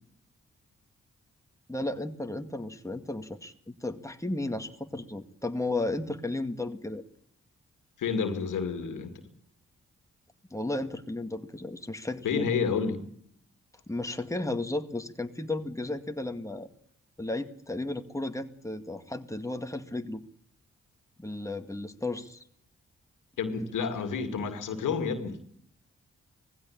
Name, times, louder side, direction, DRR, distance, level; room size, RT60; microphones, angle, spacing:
voice 1, 1.7-7.0 10.5-12.5 13.9-16.7 17.2-20.2 21.2-22.4, left 2 dB, 10° left, 2.1 m, -34 dB
voice 2, 8.0-9.2 12.2-13.0 23.4-25.4, left 5 dB, 85° left, 2.3 m, -30 dB
19.0 x 16.0 x 8.7 m
supercardioid pair, 45°, 30 cm